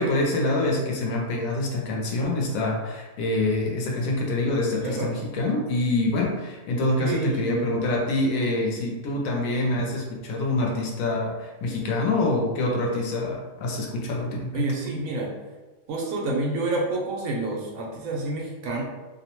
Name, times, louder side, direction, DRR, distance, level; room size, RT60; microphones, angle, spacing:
voice 1, 0.0-14.7, left 2 dB, 75° left, -1 dB, 1.0 m, -26 dB
voice 2, 7.0-7.7 14.5-15.3 15.9-18.8, right 2 dB, 75° right, -1 dB, 1.0 m, -28 dB
2.6 x 2.1 x 2.9 m, 1.2 s
omnidirectional pair, 1.5 m